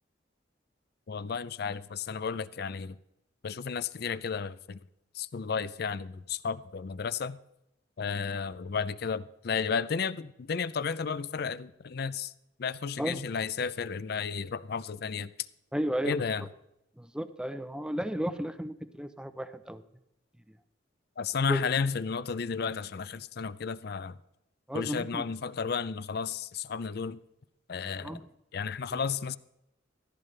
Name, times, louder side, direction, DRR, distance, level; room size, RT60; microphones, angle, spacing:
voice 1, 1.1-3.0 3.4-4.8 5.1-7.4 8.0-12.3 12.6-15.3 16.0-16.5 21.2-24.2 24.7-27.2 27.7-28.2 28.5-29.4, left 5 dB, 55° left, 0.5 m, -33 dB
voice 2, 15.7-16.3 17.0-19.8 21.5-21.6 24.7-25.2 28.0-28.2 28.9-29.0, equal, 5° right, 0.6 m, -33 dB
15.0 x 14.0 x 3.3 m
head